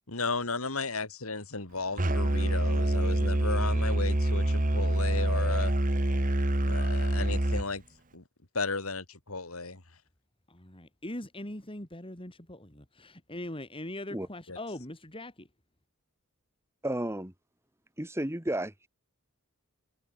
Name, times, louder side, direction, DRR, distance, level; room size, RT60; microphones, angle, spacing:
voice 1, 0.1-5.7 6.7-7.8 8.1-8.2 8.5-9.8 14.5-14.6, left 3 dB, 70° left, 3.4 m, -34 dB
Musical instrument, 2.0-7.6, right 1 dB, 40° right, 2.0 m, -26 dB
voice 2, 10.5-15.5, left 1 dB, 25° left, 3.8 m, -41 dB
voice 3, 16.8-17.3 18.0-18.9, right 1 dB, 10° right, 1.8 m, -32 dB
head